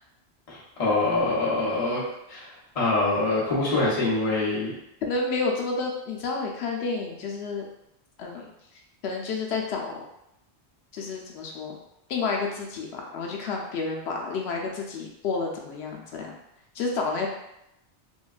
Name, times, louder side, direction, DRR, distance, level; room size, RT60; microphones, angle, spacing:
voice 1, 0.5-2.0 2.3-2.5 2.7-4.7, left 2 dB, 35° left, -7 dB, 0.9 m, -24 dB
voice 2, 5.0-7.6 8.2-8.5 9.0-10.0 10.9-11.8 12.1-16.3 16.7-17.3, left 4 dB, 85° left, 0 dB, 0.9 m, -30 dB
3.5 x 2.2 x 2.4 m, 0.84 s
omnidirectional pair, 1.1 m